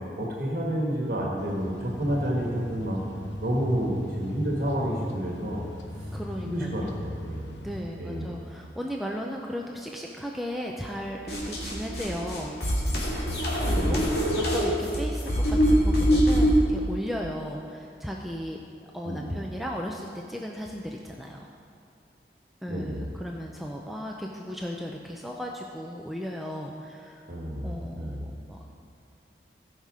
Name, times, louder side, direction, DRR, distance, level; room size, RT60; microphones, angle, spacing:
voice 1, 0.2-3.0 3.4-5.7 6.4-7.5 8.0-8.4 13.7-14.0 19.0-19.4 22.7-23.0 27.3-28.2, equal, 50° right, -2 dB, 1.6 m, -30 dB
sound 1, 1.4-7.8, equal, 85° left, 0.9 m, -38 dB
voice 2, 6.1-6.9 7.6-12.5 13.6-18.6 18.9-21.5 22.6-27.2 27.6-28.7, equal, ahead, -1 dB, 0.5 m, -36 dB
sound 2, 11.3-16.6, equal, 60° left, 2.2 m, -24 dB
15.5 x 5.7 x 4.9 m, 2.5 s
head